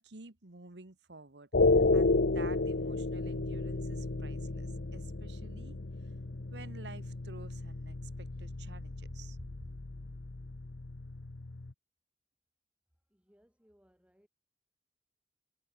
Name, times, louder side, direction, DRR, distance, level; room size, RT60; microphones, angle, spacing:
voice 1, 0.0-5.8 6.5-9.5, right 3 dB, 80° right, 1.6 m, -51 dB
sound 1, 1.5-11.7, left 3 dB, 75° left, 0.9 m, -32 dB
voice 2, 13.1-14.3, equal, 5° right, 6.4 m, -67 dB
head